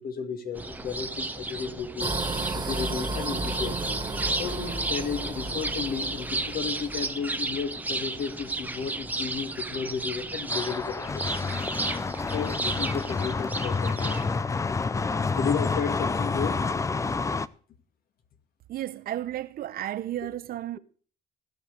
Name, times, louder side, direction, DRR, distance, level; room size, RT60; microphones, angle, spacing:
voice 1, 0.0-2.1 2.5-11.2 12.3-14.2 15.4-16.6, left 6 dB, 60° left, 2.1 m, -33 dB
sound 1, 0.5-14.4, right 2 dB, 10° right, 0.9 m, -33 dB
sound 2, 2.0-7.0, right 2 dB, 25° right, 1.9 m, -33 dB
sound 3, 10.5-17.5, left 4 dB, 20° left, 0.5 m, -29 dB
voice 2, 18.7-20.8, right 12 dB, 60° right, 0.8 m, -33 dB
16.0 x 5.5 x 8.2 m
cardioid pair, 110°, 17 cm